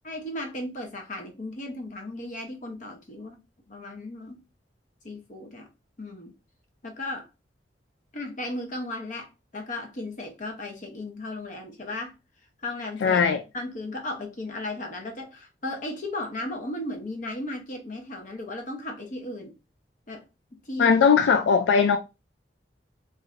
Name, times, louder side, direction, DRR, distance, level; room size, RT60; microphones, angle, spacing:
voice 1, 0.1-3.4 3.7-4.4 5.0-5.7 6.0-6.3 6.8-7.3 8.1-12.1 12.6-13.2 13.5-19.5 20.1-20.2 20.7-21.0, left 2 dB, 45° left, 0.7 m, -35 dB
voice 2, 13.0-13.4 20.8-22.0, left 6 dB, 85° left, 0.3 m, -19 dB
3.1 x 2.5 x 2.4 m
head